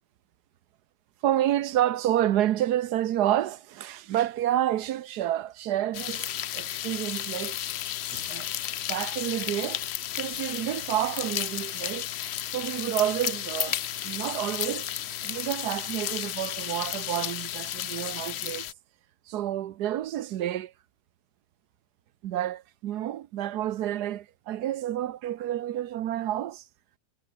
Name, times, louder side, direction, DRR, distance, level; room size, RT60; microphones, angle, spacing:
voice 1, 1.2-6.3 6.5-7.6 8.1-8.5 8.9-9.8 10.2-12.1 12.5-14.9 15.2-18.7 19.3-20.7 22.2-26.6, right 12 dB, 85° right, 1.4 m, -29 dB
sound 1, 5.9-18.7, left 11 dB, 65° left, 0.6 m, -33 dB
omnidirectional pair, 1.7 m